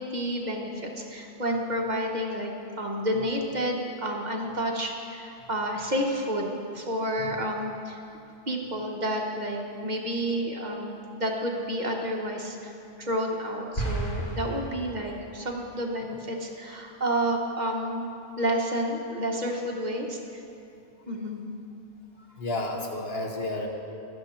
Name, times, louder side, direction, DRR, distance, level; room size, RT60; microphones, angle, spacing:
voice 1, 0.0-2.5 2.8-8.0 8.5-18.1 18.4-20.4 21.1-21.4, equal, 45° right, 0 dB, 1.3 m, -30 dB
sound 1, 13.7-15.4, right 1 dB, 50° left, 2.1 m, -32 dB
voice 2, 22.4-23.7, left 2 dB, 70° left, 1 dB, 1.6 m, -31 dB
15.5 x 11.5 x 4.4 m, 2.7 s
omnidirectional pair, 1.1 m